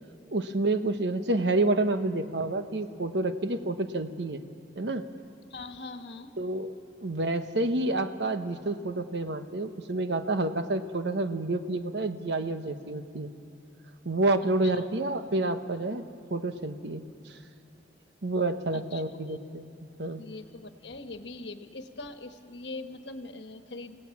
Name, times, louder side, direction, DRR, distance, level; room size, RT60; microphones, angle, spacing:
voice 1, 0.3-4.4 4.8-5.0 6.4-6.7 7.0-13.3 14.0-16.0 16.3-17.0 18.2-19.7 20.0-20.2, right 2 dB, 70° right, 9 dB, 1.0 m, -29 dB
voice 2, 5.5-6.4 14.4-14.9 18.7-19.5 20.2-24.0, left 3 dB, 70° left, 7 dB, 1.3 m, -42 dB
27.0 x 17.5 x 7.2 m, 2.8 s
head